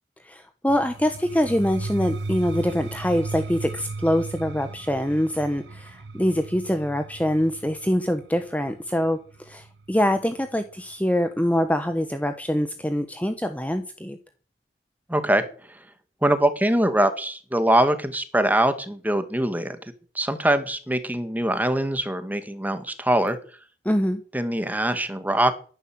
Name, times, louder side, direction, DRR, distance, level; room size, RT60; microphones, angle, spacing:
voice 1, 0.2-14.2 23.8-24.2, equal, 10° left, 8 dB, 1.1 m, -24 dB
sound 1, 0.7-10.5, right 3 dB, 85° right, 0.8 m, -36 dB
voice 2, 15.1-15.4 16.2-19.8 20.2-23.4 24.3-25.5, right 1 dB, 10° right, 10 dB, 1.9 m, -23 dB
14.0 x 11.0 x 7.9 m, 0.41 s
head